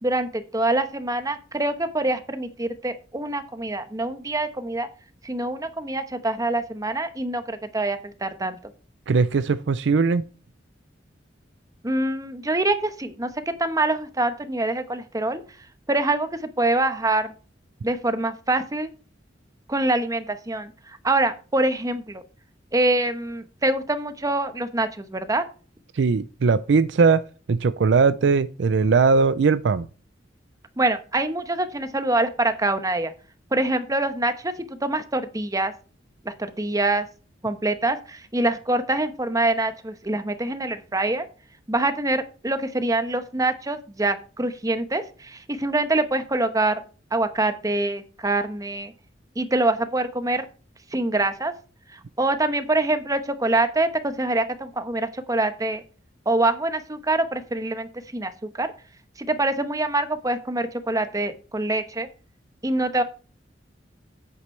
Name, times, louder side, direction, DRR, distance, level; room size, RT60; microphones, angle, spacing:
voice 1, 0.0-4.9 5.2-8.6 11.8-15.4 15.9-17.3 17.8-18.9 19.7-22.2 22.7-25.4 30.8-33.1 33.5-35.7 36.2-37.1 37.4-41.3 41.7-46.8 47.1-48.9 49.3-50.4 50.9-51.5 51.9-55.8 56.3-58.7 59.2-62.1 62.6-63.0, right 2 dB, 20° right, 1.0 m, -25 dB
voice 2, 9.1-10.3 25.9-29.9, right 4 dB, 70° right, 0.4 m, -20 dB
9.7 x 8.3 x 3.2 m
head